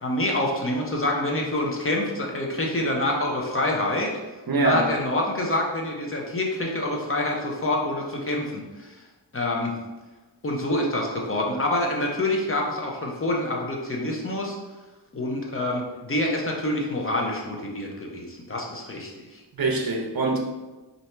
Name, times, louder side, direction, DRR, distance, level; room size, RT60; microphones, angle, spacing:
voice 1, 0.0-4.1 4.5-9.0 9.3-9.8 10.4-14.6 15.1-19.4, left 1 dB, 30° left, -1 dB, 0.8 m, -26 dB
voice 2, 4.5-4.9 19.5-20.4, right 3 dB, 50° right, 1 dB, 0.7 m, -23 dB
4.3 x 2.7 x 3.3 m, 1.2 s
wide cardioid pair, 90°, 46 cm